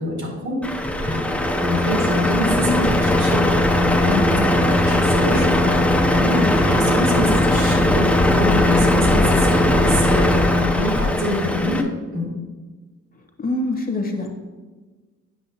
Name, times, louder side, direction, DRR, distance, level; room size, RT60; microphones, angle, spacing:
voice 1, 0.0-1.3 1.6-2.8 3.2-11.8 12.1-12.3, equal, 70° right, -2 dB, 2.2 m, -26 dB
Truck, 0.6-11.8, left 1 dB, 5° left, 0.6 m, -18 dB
voice 2, 2.6-2.9 13.1-14.3, left 2 dB, 30° left, 3 dB, 1.0 m, -25 dB
8.3 x 5.5 x 2.8 m, 1.3 s
cardioid pair, 90°, 30 cm